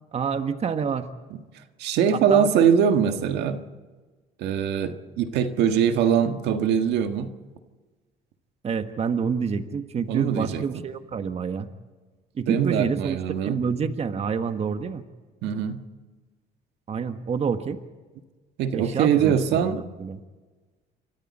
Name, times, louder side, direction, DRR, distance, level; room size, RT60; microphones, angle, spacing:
voice 1, 0.1-1.1 2.1-2.6 8.6-11.7 12.3-15.0 16.9-17.8 18.7-20.2, right 6 dB, 40° right, 8 dB, 1.5 m, -28 dB
voice 2, 1.8-3.6 4.4-7.3 10.1-10.7 12.5-13.6 15.4-15.8 18.6-19.8, right 8 dB, 85° right, 7 dB, 1.7 m, -22 dB
28.5 x 24.0 x 4.3 m, 1.3 s
cardioid pair, 110°, 17 cm